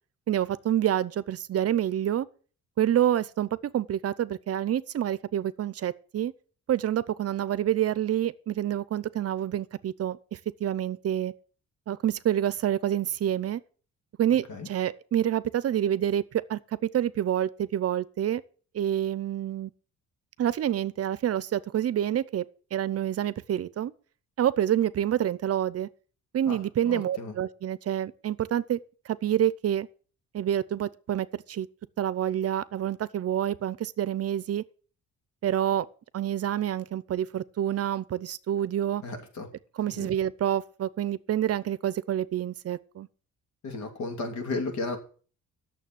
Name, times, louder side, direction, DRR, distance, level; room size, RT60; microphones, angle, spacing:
voice 1, 0.3-2.3 2.8-6.3 6.7-11.3 11.9-13.6 14.2-18.4 18.7-19.7 20.4-22.4 22.7-23.9 24.4-25.9 26.3-28.8 29.1-29.9 30.3-31.7 32.0-34.6 35.4-35.9 36.1-39.0 39.8-43.1, right 11 dB, 55° right, 0.7 m, -27 dB
voice 2, 26.8-27.3 39.0-39.5 40.0-40.1 43.6-45.0, left 3 dB, 70° left, 2.8 m, -34 dB
9.2 x 7.0 x 7.5 m
cardioid pair, 90°, 30 cm